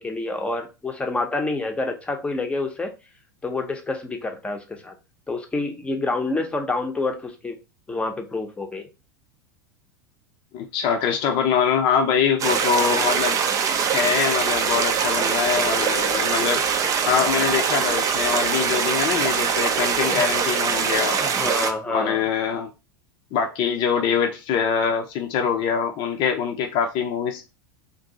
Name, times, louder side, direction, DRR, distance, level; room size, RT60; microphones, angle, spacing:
voice 1, 0.0-2.9 3.4-4.9 5.3-7.6 7.9-8.9 20.0-20.3 21.2-22.2, left 2 dB, 10° left, 0.7 m, -28 dB
voice 2, 10.5-13.4 13.9-16.6 17.1-21.2 21.9-22.7 23.3-27.4, left 7 dB, 45° left, 0.6 m, -23 dB
sound 1, 12.4-21.7, right 7 dB, 30° right, 0.5 m, -23 dB
2.6 x 2.6 x 3.8 m
figure-of-eight pair, 85°, 11 cm